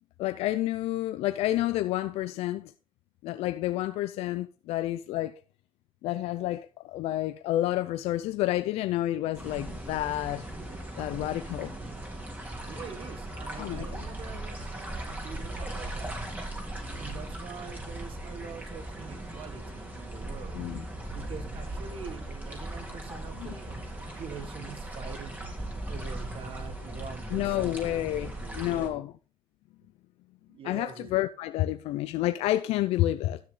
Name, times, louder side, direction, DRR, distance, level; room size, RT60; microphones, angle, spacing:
voice 1, 0.2-2.7 3.2-5.3 6.0-10.5 11.0-11.7 13.6-14.0 20.5-20.8 23.4-23.5 27.3-29.1 30.6-33.4, left 14 dB, 90° left, 0.6 m, -29 dB
sound 1, 9.3-28.9, right 1 dB, 15° right, 3.5 m, -38 dB
voice 2, 12.6-16.2 17.0-20.6 21.1-25.4 25.9-27.8 28.2-29.0 30.5-31.1, right 6 dB, 60° right, 1.8 m, -44 dB
12.5 x 6.4 x 3.9 m
cardioid pair, 90°, 10 cm